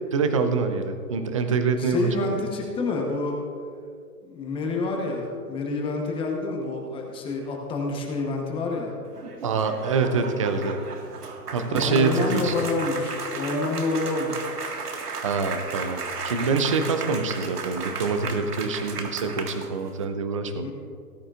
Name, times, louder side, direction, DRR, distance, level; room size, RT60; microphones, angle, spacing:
voice 1, 0.1-2.4 9.4-10.8 11.5-12.5 15.2-20.7, right 4 dB, 20° right, 8 dB, 0.5 m, -25 dB
voice 2, 1.8-3.4 4.2-8.9 11.7-14.5 20.6-20.7, left 3 dB, 10° left, 0 dB, 1.0 m, -28 dB
sound 1, 9.0-20.0, right 4 dB, 75° right, 1.8 m, -35 dB
18.5 x 9.8 x 2.5 m, 2.3 s
hypercardioid pair, 135°, 47 cm